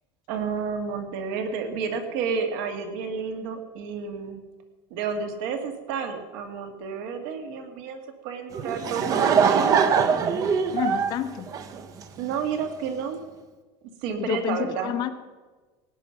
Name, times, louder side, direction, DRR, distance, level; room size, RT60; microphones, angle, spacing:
voice 1, 0.3-4.4 4.9-9.4 12.2-13.2 14.0-14.9, right 6 dB, 60° right, 6 dB, 2.0 m, -30 dB
Laughter / Crowd, 8.5-12.3, right 6 dB, 30° right, 0.8 m, -22 dB
voice 2, 10.7-11.5 14.2-15.1, left 10 dB, 35° left, 10 dB, 0.8 m, -29 dB
17.5 x 9.5 x 5.8 m, 1.3 s
cardioid pair, 170°, 12 cm